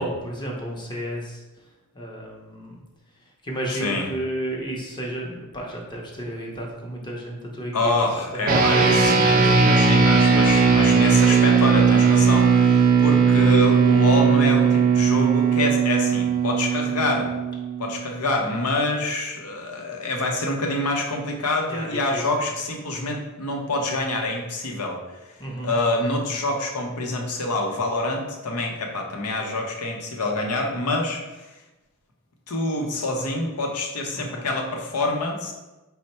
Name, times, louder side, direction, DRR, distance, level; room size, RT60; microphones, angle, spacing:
voice 1, 0.0-1.4 1.9-2.7 3.4-7.9 8.3-9.0 9.3-9.7 21.7-22.4 25.4-25.8 34.1-34.5, right 1 dB, 20° left, -1 dB, 0.7 m, -32 dB
voice 2, 3.7-4.1 7.7-17.3 17.8-25.0 25.6-31.2 32.5-35.5, left 2 dB, 85° left, 2 dB, 0.6 m, -26 dB
sound 1, 8.5-18.1, right 5 dB, 40° right, 0.4 m, -18 dB
4.4 x 2.0 x 4.1 m, 1.1 s
head